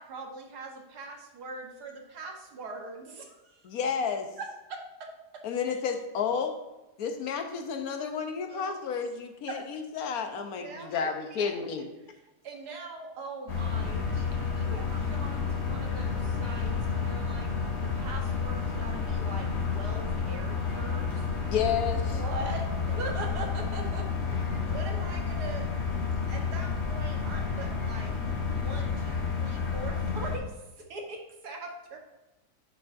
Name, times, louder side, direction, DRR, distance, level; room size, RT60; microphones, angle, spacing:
voice 1, 0.0-3.7 4.4-5.4 8.5-8.8 9.5-9.7 10.6-11.8 12.4-17.5 17.8-21.3 22.1-25.9 26.3-28.1 28.6-32.0, right 3 dB, 75° right, 2 dB, 1.7 m, -42 dB
voice 2, 3.6-4.3 5.4-6.6 7.0-11.9 21.5-22.2, left 6 dB, 65° left, 5 dB, 1.2 m, -31 dB
sound 1, 13.5-30.4, left 5 dB, 45° left, 1.6 m, -30 dB
8.7 x 6.7 x 2.6 m, 1.0 s
omnidirectional pair, 1.7 m